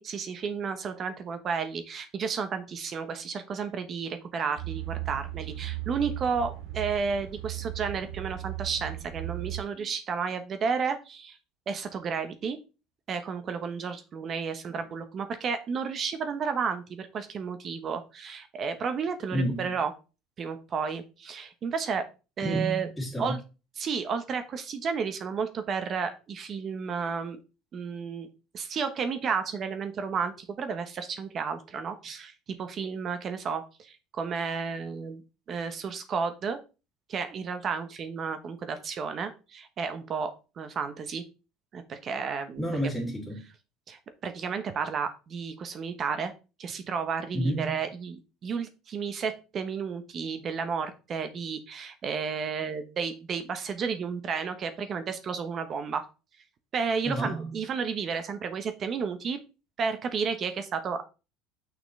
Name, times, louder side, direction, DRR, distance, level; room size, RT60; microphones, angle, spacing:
voice 1, 0.0-11.4 11.7-12.6 13.1-19.9 20.4-22.1 22.4-22.9 23.2-23.4 23.8-27.4 27.7-28.3 28.5-32.3 32.6-35.2 35.5-36.6 37.1-41.2 41.7-42.7 43.9-46.3 46.6-56.0 56.7-59.4 59.8-61.0, right 6 dB, 40° right, 1.1 m, -32 dB
sound 1, 4.6-9.6, right 16 dB, 85° right, 2.4 m, -36 dB
voice 2, 19.3-19.7 22.4-23.4 42.6-43.5 47.3-47.8 57.0-57.5, right 1 dB, ahead, 2.8 m, -30 dB
6.5 x 5.9 x 3.3 m
supercardioid pair, 120°, 0 cm